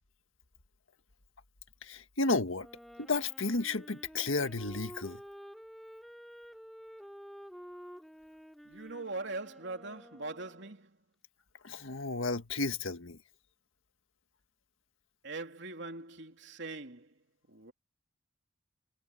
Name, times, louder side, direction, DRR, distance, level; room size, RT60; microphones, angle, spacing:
voice 1, 1.8-2.7 3.0-5.2 11.6-13.2, left 3 dB, 85° left, 1.7 m, -32 dB
Wind instrument woodwind instrument, 2.5-10.8, equal, ahead, 2.6 m, -51 dB
voice 2, 8.6-11.0 15.2-17.2 17.5-17.7, right 3 dB, 65° right, 3.3 m, -42 dB
head